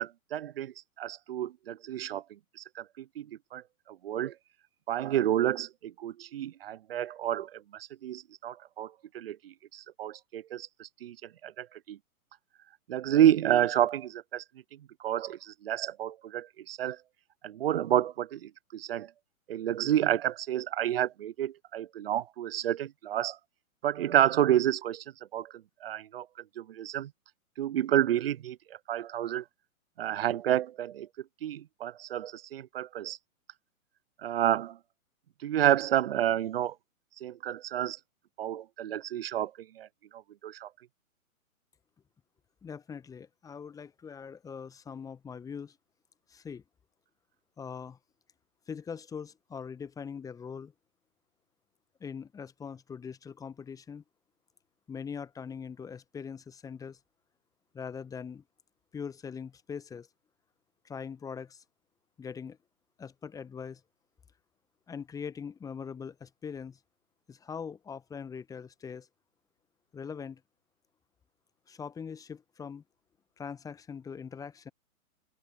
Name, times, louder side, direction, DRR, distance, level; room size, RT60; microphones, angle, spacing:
voice 1, 0.0-4.3 4.9-12.0 12.9-14.4 15.0-17.0 17.4-19.1 19.5-23.4 23.8-25.0 25.3-26.3 26.6-27.1 27.6-28.6 28.9-29.4 30.0-31.1 31.4-33.2 34.2-34.8 35.4-36.7 37.2-38.0 38.4-39.9 40.1-40.7, right 11 dB, 45° right, 1.0 m, -30 dB
voice 2, 42.6-45.8 46.3-46.6 47.6-48.0 48.7-50.7 52.0-54.0 54.9-57.0 57.7-58.4 58.9-60.1 60.8-61.6 62.2-62.6 63.0-63.8 64.9-66.8 67.3-69.1 69.9-70.4 71.7-72.8 73.4-74.7, left 6 dB, 10° left, 1.4 m, -41 dB
open air
figure-of-eight pair, 120°, 43 cm